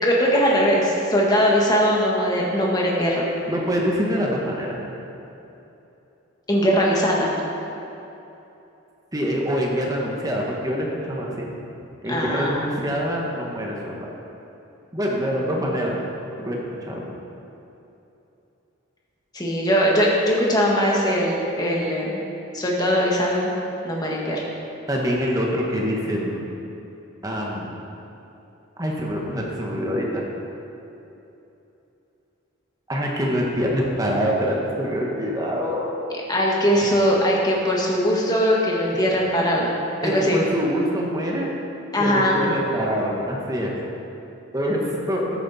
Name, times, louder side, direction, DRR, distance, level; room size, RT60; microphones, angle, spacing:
voice 1, 0.0-3.3 6.5-7.3 12.1-12.6 19.3-22.2 22.5-23.5 23.8-24.4 36.3-39.7 40.0-40.4 41.9-42.4, equal, 20° left, -3 dB, 1.7 m, -20 dB
voice 2, 3.5-4.8 9.1-11.5 12.0-14.0 14.9-16.0 16.4-17.0 24.9-26.5 27.2-27.7 28.8-30.2 32.9-36.0 38.9-39.0 40.0-41.5 42.0-43.7 44.5-44.8 45.1-45.2, equal, 15° right, -2 dB, 1.4 m, -25 dB
13.5 x 9.3 x 4.3 m, 2.9 s
head